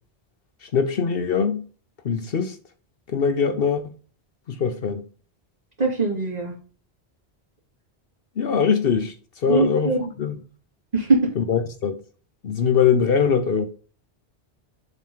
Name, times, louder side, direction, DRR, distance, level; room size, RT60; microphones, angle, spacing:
voice 1, 0.6-1.6 2.0-2.6 3.1-3.9 4.5-5.0 8.4-10.4 11.4-12.0 12.4-13.7, left 6 dB, 65° left, 1.0 m, -22 dB
voice 2, 5.8-6.5 9.5-10.1 10.9-11.2, right 3 dB, 40° right, 2.8 m, -21 dB
7.5 x 3.1 x 5.6 m
omnidirectional pair, 1.1 m